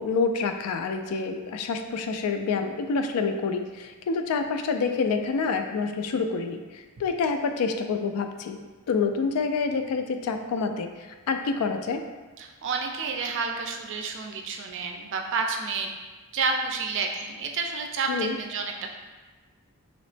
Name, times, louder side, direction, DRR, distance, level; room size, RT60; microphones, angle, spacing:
voice 1, 0.0-8.6 8.9-12.0 18.1-18.4, left 4 dB, 80° left, 6 dB, 0.3 m, -27 dB
voice 2, 12.4-15.9 16.3-19.0, right 4 dB, 55° right, 3 dB, 0.4 m, -30 dB
3.0 x 2.9 x 3.2 m, 1.3 s
head